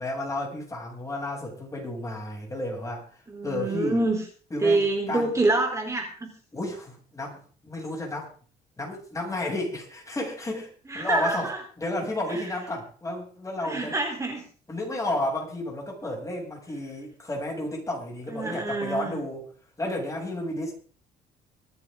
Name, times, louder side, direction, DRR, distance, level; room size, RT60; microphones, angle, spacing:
voice 1, 0.0-4.0 4.5-5.3 6.5-8.3 8.8-11.5 11.8-14.0 14.7-19.4 19.8-20.7, left 1 dB, 20° left, -1 dB, 7.6 m, -32 dB
voice 2, 3.3-4.2 4.6-6.3 10.9-11.6 12.3-12.4 13.6-14.4 18.3-19.2, right 2 dB, 15° right, 2 dB, 3.9 m, -26 dB
24.5 x 10.0 x 3.8 m, 0.42 s
cardioid pair, 110°, 17 cm